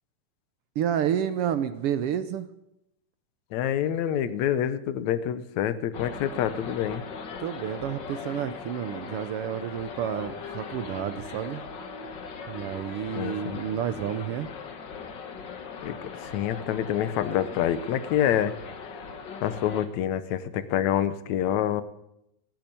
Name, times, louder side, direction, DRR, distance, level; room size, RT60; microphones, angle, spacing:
voice 1, 0.7-2.5 7.4-11.6 12.5-14.5, right 9 dB, 75° right, 11 dB, 1.3 m, -30 dB
voice 2, 3.5-7.0 13.2-13.6 15.8-18.5 18.9-19.0 19.4-21.8, left 10 dB, 75° left, 13 dB, 2.1 m, -27 dB
sound 1, 5.9-19.9, left 5 dB, 45° left, 1.6 m, -40 dB
17.5 x 9.2 x 8.8 m, 0.84 s
omnidirectional pair, 3.4 m